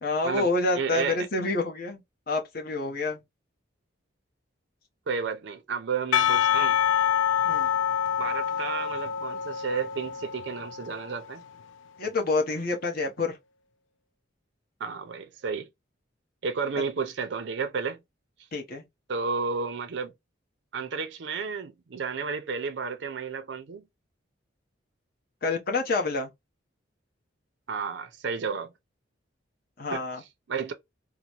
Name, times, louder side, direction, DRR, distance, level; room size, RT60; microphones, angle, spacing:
voice 1, 0.0-2.0 2.3-3.2 7.4-7.7 12.0-13.4 18.5-18.8 25.4-26.3 29.8-30.2, left 3 dB, 50° left, 0.9 m, -28 dB
voice 2, 0.7-1.2 5.1-6.8 7.5-7.6 8.2-11.4 14.8-15.7 16.4-18.0 19.1-20.1 20.7-23.8 27.7-28.7 29.9-30.0 30.5-30.7, right 5 dB, 65° right, 0.5 m, -32 dB
Percussion / Church bell, 6.1-11.2, left 10 dB, 75° left, 0.3 m, -26 dB
3.9 x 2.1 x 2.9 m
head